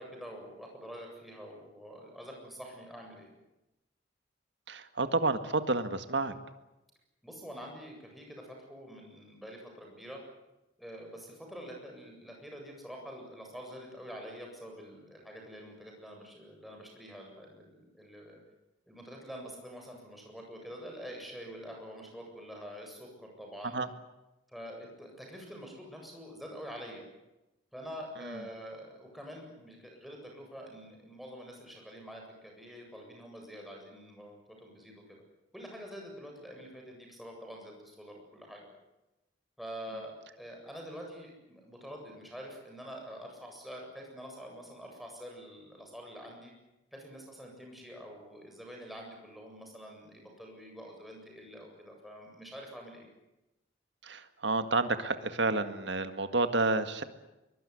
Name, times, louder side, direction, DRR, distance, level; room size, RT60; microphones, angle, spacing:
voice 1, 0.0-3.3 7.2-10.2 10.8-18.4 18.9-23.8 24.5-27.0 27.7-35.2 35.5-38.7 39.6-46.5 46.9-53.1, equal, ahead, 0 dB, 7.8 m, -46 dB
voice 2, 4.7-6.3 23.7-23.9 28.2-28.4 54.0-57.0, right 3 dB, 60° right, 9 dB, 1.9 m, -30 dB
23.0 x 22.5 x 9.9 m, 0.97 s
head